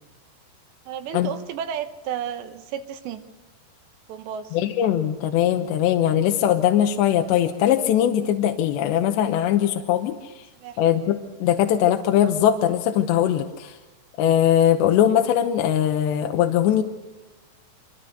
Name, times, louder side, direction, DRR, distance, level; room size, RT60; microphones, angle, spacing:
voice 1, 0.9-3.2 4.1-4.6 10.6-10.8, right 9 dB, 75° right, 10 dB, 3.3 m, -32 dB
voice 2, 4.5-10.5 10.8-13.8 14.2-16.8, left 10 dB, 80° left, 5 dB, 3.1 m, -21 dB
26.0 x 23.5 x 6.7 m, 1.0 s
omnidirectional pair, 5.1 m